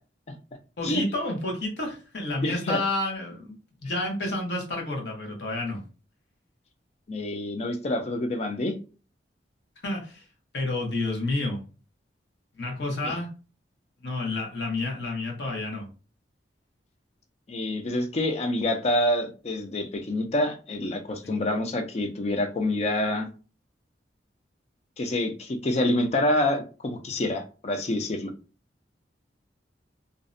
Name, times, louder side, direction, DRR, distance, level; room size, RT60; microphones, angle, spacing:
voice 1, 0.8-5.8 9.8-10.2 10.5-11.6 12.6-13.3 14.0-15.9 21.2-21.3, left 2 dB, 65° left, 0 dB, 0.8 m, -30 dB
voice 2, 2.4-2.8 7.1-8.8 13.0-13.2 17.5-23.3 25.0-28.3, left 1 dB, 35° left, 6 dB, 0.4 m, -27 dB
2.5 x 2.0 x 2.5 m, 0.35 s
head